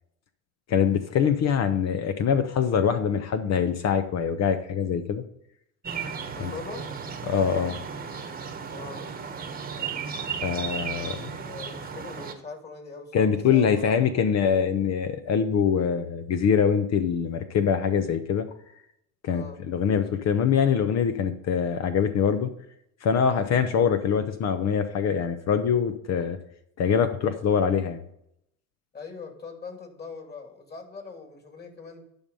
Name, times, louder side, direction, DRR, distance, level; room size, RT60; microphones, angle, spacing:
voice 1, 0.7-5.2 6.4-6.5 7.3-7.8 10.4-11.3 13.1-18.5 19.2-22.5 23.0-26.4 26.8-28.0, left 7 dB, 40° left, 9 dB, 0.9 m, -24 dB
sound 1, 5.8-12.3, right 6 dB, 20° right, 1.3 m, -35 dB
voice 2, 6.3-6.8 8.7-9.1 11.1-14.0 19.3-19.6 28.9-32.0, left 4 dB, 25° left, 3 dB, 2.6 m, -41 dB
11.0 x 5.5 x 5.4 m, 0.76 s
hypercardioid pair, 90°, 40 cm